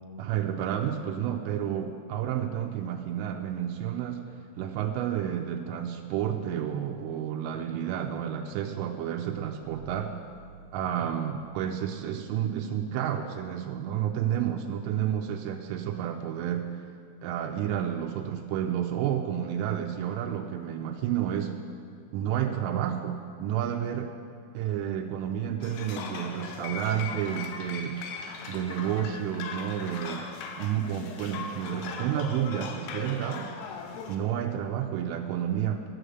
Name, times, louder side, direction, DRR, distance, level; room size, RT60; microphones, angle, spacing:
voice 1, 0.2-4.2 4.6-10.1 10.7-16.7 17.2-21.5 22.1-24.1 24.5-27.9 28.5-30.2 30.6-33.5 34.1-35.9, right 10 dB, 90° right, 2 dB, 3.2 m, -30 dB
sound 1, 9.6-11.9, right 8 dB, 75° right, 2.6 m, -52 dB
sound 2, 25.6-34.2, left 5 dB, 80° left, 2.4 m, -39 dB
12.5 x 6.4 x 7.9 m, 2.4 s
omnidirectional pair, 5.6 m